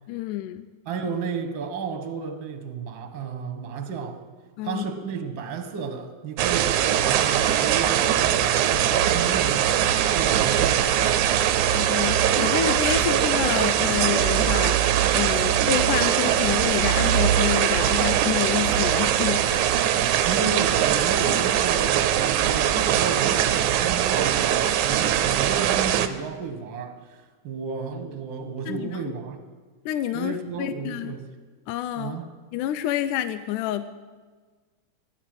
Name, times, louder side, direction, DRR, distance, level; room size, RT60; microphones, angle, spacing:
voice 1, 0.1-0.7 4.6-4.9 11.7-19.8 28.7-29.0 29.9-31.2 31.7-32.2 32.5-33.8, left 12 dB, 85° left, 11 dB, 2.1 m, -28 dB
voice 2, 0.8-4.2 4.6-11.3 20.2-29.4 30.1-31.3 32.0-32.3, right 5 dB, 50° right, 6 dB, 1.7 m, -33 dB
sound 1, 6.4-26.1, right 10 dB, 85° right, 2.2 m, -21 dB
16.5 x 11.0 x 7.8 m, 1.4 s
omnidirectional pair, 3.5 m